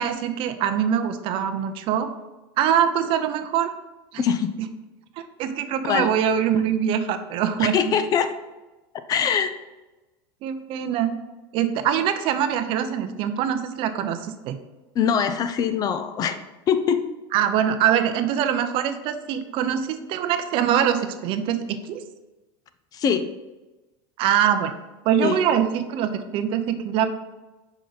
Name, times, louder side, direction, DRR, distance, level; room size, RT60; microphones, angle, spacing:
voice 1, 0.0-2.1 2.6-3.7 4.1-4.2 4.6-4.7 5.2-8.0 10.4-11.2 11.5-14.6 17.3-22.0 24.2-24.7 25.0-27.1, right 9 dB, 50° right, 9 dB, 0.6 m, -23 dB
voice 2, 4.2-4.5 5.8-6.1 7.6-8.3 9.1-9.5 15.0-16.4 16.7-17.0 22.9-23.3 25.2-25.4, left 7 dB, 30° left, 10 dB, 0.4 m, -22 dB
5.5 x 4.9 x 4.0 m, 1.1 s
supercardioid pair, 135°, 12 cm